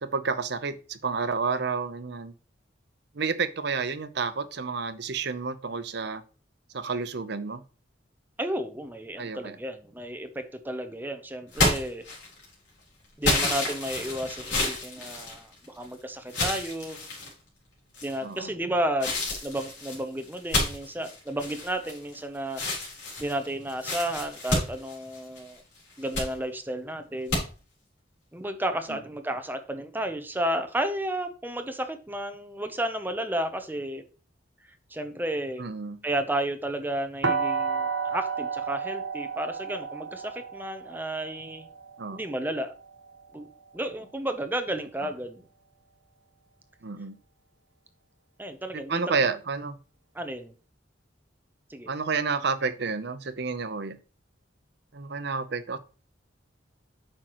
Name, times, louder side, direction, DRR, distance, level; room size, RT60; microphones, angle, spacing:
voice 1, 0.0-2.3 3.1-6.2 6.7-7.6 9.2-9.6 18.2-18.5 28.9-29.0 35.6-36.0 42.0-42.2 46.8-47.2 48.7-49.7 51.9-54.0 54.9-55.8, right 5 dB, 60° right, 0.7 m, -30 dB
voice 2, 8.4-12.0 13.2-17.0 18.0-19.2 19.4-22.6 23.2-25.6 26.0-27.4 28.3-34.0 34.9-35.6 36.0-41.7 42.1-42.7 43.3-43.5 43.7-45.5 48.4-49.3 50.1-50.5 51.7-51.9, right 1 dB, 10° right, 0.7 m, -32 dB
sound 1, 11.5-12.5 13.2-15.8 16.3-17.3 17.9-18.4 19.0-22.2 22.5-25.5 25.9-26.3 27.3-27.4, left 2 dB, 70° left, 3.8 m, -29 dB
sound 2, 37.2-43.1, right 5 dB, 85° right, 1.3 m, -32 dB
8.8 x 6.2 x 3.0 m
head